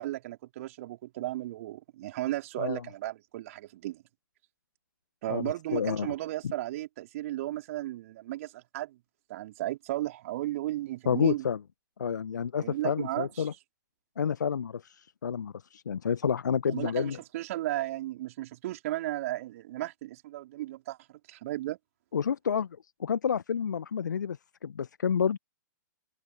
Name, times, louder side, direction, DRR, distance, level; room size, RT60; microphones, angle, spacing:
voice 1, 0.0-4.0 5.2-9.0 9.3-11.4 12.6-13.5 16.7-21.8, right 15 dB, 45° right, 4.1 m, -35 dB
voice 2, 5.3-6.1 11.1-11.6 12.0-13.5 14.2-17.2 22.1-22.7 23.0-25.4, left 7 dB, 65° left, 1.1 m, -29 dB
figure-of-eight pair, 115°, 11 cm